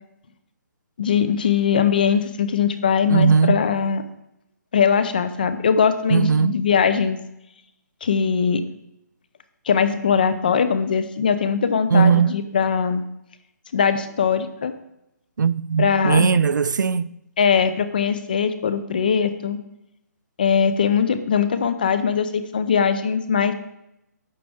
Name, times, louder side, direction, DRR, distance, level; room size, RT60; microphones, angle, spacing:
voice 1, 1.0-4.0 4.7-7.2 8.0-8.6 9.7-13.0 13.7-14.7 15.8-16.3 17.4-19.6 20.4-23.5, left 6 dB, 30° left, 0.5 m, -21 dB
voice 2, 3.1-3.6 6.1-6.5 11.9-12.4 15.4-17.1, right 6 dB, 85° right, 0.4 m, -18 dB
11.5 x 7.4 x 3.5 m
hypercardioid pair, 175°, 10 cm